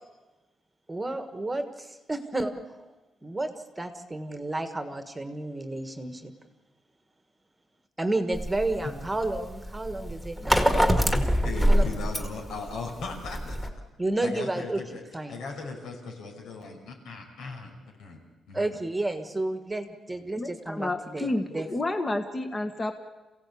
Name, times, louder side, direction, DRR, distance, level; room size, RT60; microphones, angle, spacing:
voice 1, 0.9-2.5 2.8-2.9 3.2-3.5 3.8-6.3 8.0-10.8 11.7-11.9 14.0-14.8 15.1-15.3 18.5-21.7, right 2 dB, 10° right, 8 dB, 1.5 m, -31 dB
sound 1, 8.3-13.7, equal, 5° left, 1.9 m, -25 dB
voice 2, 11.4-13.6 14.2-15.0 15.3-17.7 18.0-18.8 20.1-20.2, left 3 dB, 85° left, 1 dB, 5.7 m, -38 dB
voice 3, 20.4-22.9, left 2 dB, 20° left, 6 dB, 1.3 m, -30 dB
28.5 x 16.5 x 8.4 m, 1.2 s
cardioid pair, 165°, 0 cm